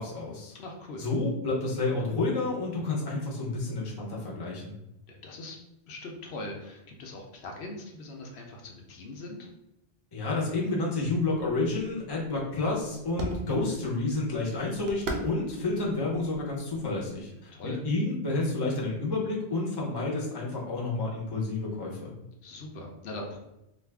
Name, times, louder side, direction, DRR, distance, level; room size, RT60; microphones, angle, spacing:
voice 1, 0.0-0.5 1.0-4.7 10.1-22.1, left 2 dB, 25° left, -4 dB, 0.7 m, -30 dB
voice 2, 0.5-1.1 5.1-5.6 5.9-9.5 17.5-17.8 22.4-23.4, left 2 dB, 80° left, 2 dB, 0.8 m, -41 dB
sound 1, 11.0-17.3, right 2 dB, 80° right, 0.8 m, -41 dB
2.5 x 2.4 x 3.3 m, 0.87 s
omnidirectional pair, 1.1 m